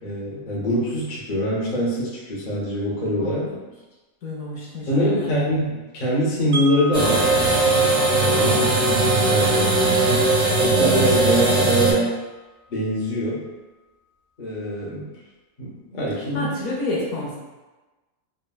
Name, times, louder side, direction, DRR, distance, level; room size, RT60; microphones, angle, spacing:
voice 1, 0.0-3.4 4.9-7.3 8.3-8.5 8.9-10.3 10.6-12.2 12.7-13.5 14.4-15.0 15.6-16.5, equal, 45° left, -6 dB, 0.7 m, -24 dB
voice 2, 3.2-3.6 4.2-5.4 8.3-8.6 16.3-17.4, left 2 dB, 70° left, -4 dB, 1.1 m, -30 dB
Wind chime, 6.5-12.5, left 1 dB, 65° right, 0.9 m, -36 dB
sound 1, 6.9-11.9, right 2 dB, 85° right, 1.4 m, -19 dB
3.5 x 2.1 x 2.2 m, 1.2 s
omnidirectional pair, 1.5 m